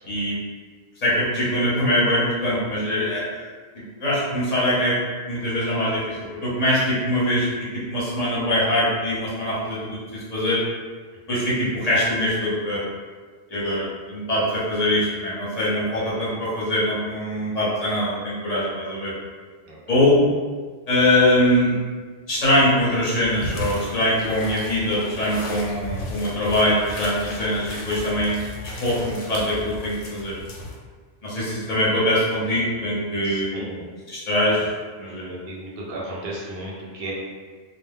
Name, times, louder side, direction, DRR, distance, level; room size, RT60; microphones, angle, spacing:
voice 1, 0.0-0.4 1.0-3.5 3.7-5.0 5.3-10.6 11.3-12.8 13.5-19.1 19.9-20.2 20.9-21.8 22.3-28.4 28.6-30.4 31.2-33.6 34.1-34.7 35.0-35.3, left 1 dB, 35° left, -8 dB, 0.8 m, -23 dB
sound 1, 23.2-30.8, left 1 dB, 80° left, 0.9 m, -34 dB
voice 2, 33.2-33.9 35.3-37.1, right 1 dB, 55° right, -5 dB, 0.8 m, -35 dB
2.2 x 2.1 x 3.4 m, 1.5 s
omnidirectional pair, 1.2 m